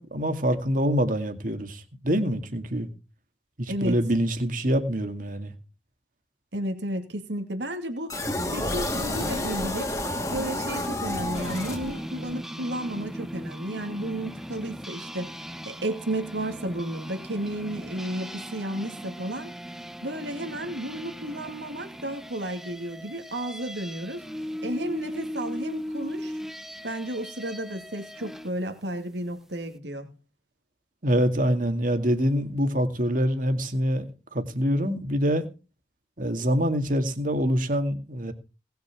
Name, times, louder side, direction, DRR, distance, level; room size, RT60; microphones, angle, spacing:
voice 1, 0.0-2.9 3.6-5.5 31.0-34.0 34.3-35.5 36.2-38.3, equal, 50° right, 2.2 m, -25 dB
voice 2, 3.7-4.0 6.5-8.1 8.5-9.9 10.3-15.3 15.7-19.5 20.0-24.2 24.6-26.4 26.8-30.1, right 1 dB, 85° right, 2.6 m, -32 dB
sound 1, 8.1-12.3, left 1 dB, 20° left, 2.1 m, -30 dB
sound 2, 11.3-28.5, equal, ahead, 0.8 m, -38 dB
19.0 x 6.9 x 6.1 m
head